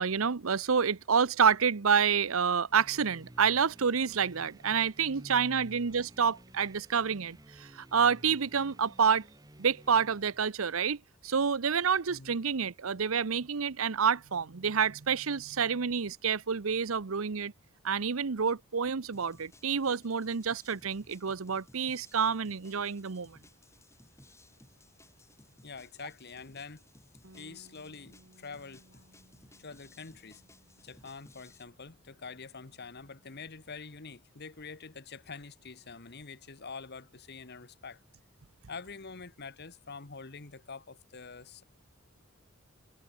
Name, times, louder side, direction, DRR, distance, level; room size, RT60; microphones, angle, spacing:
voice 1, 0.0-9.2 9.6-17.5 17.8-23.4, right 6 dB, 80° right, 0.8 m, -28 dB
sound 1, 2.7-10.5, right 1 dB, 20° right, 1.5 m, -53 dB
sound 2, 19.1-31.6, left 2 dB, 15° left, 3.0 m, -60 dB
voice 2, 25.6-26.8 27.3-29.0 29.6-30.4 30.8-38.0 38.7-41.6, left 4 dB, 55° left, 1.6 m, -46 dB
Bass guitar, 27.2-33.5, right 1 dB, 65° right, 4.0 m, -63 dB
head